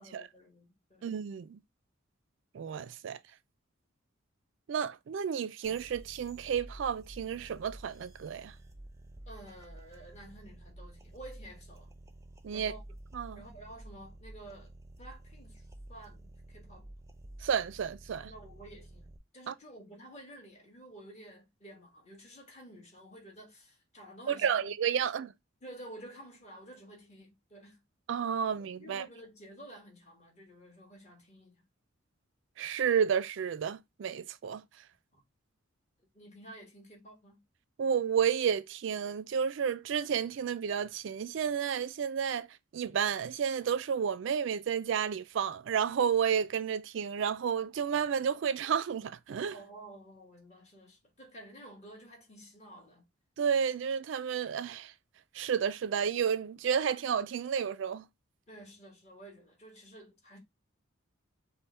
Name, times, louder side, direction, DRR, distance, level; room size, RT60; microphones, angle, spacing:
voice 1, 0.0-1.1 9.3-11.9 12.5-12.8 13.3-14.7 15.0-16.9 18.2-24.7 25.6-27.8 28.8-31.6 35.1-35.2 36.1-37.4 49.5-53.0 58.5-60.4, right 1 dB, 35° left, 1.5 m, -51 dB
voice 2, 1.0-1.6 2.5-3.2 4.7-8.5 12.4-12.7 13.1-13.4 17.4-18.3 19.5-19.6 24.3-25.3 28.1-29.1 32.6-34.6 37.8-42.5 42.7-49.5 53.4-54.9 55.3-58.1, right 7 dB, 65° right, 0.3 m, -31 dB
sound 1, 5.6-19.2, right 1 dB, 15° right, 0.5 m, -51 dB
5.3 x 2.2 x 4.2 m
head